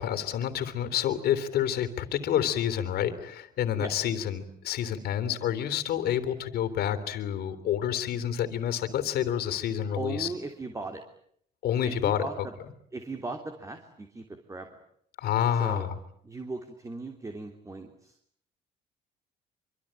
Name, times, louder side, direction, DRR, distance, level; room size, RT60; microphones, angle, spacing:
voice 1, 0.0-10.3 11.6-12.3 15.2-15.9, left 10 dB, 70° left, 11 dB, 3.4 m, -28 dB
voice 2, 10.0-11.0 11.8-12.5 12.9-14.7 15.5-15.9 16.2-18.1, right 3 dB, 20° right, 5 dB, 3.2 m, -38 dB
25.5 x 25.5 x 8.9 m, 0.67 s
cardioid pair, 110°, 17 cm